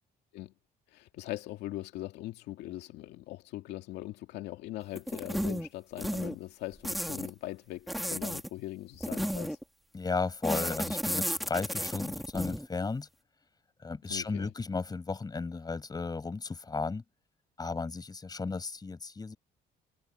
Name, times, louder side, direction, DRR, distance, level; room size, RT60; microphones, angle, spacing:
voice 1, 0.9-9.6 14.1-14.5, left 16 dB, 85° left, 2.4 m, -41 dB
sound 1, 4.9-5.7 6.0-6.3 6.8-7.3 7.9-8.5 9.0-9.6 10.4-12.7, equal, ahead, 3.7 m, -33 dB
voice 2, 9.9-13.1 13.8-17.0 17.6-19.4, left 4 dB, 25° left, 6.6 m, -34 dB
cardioid pair, 110°, 17 cm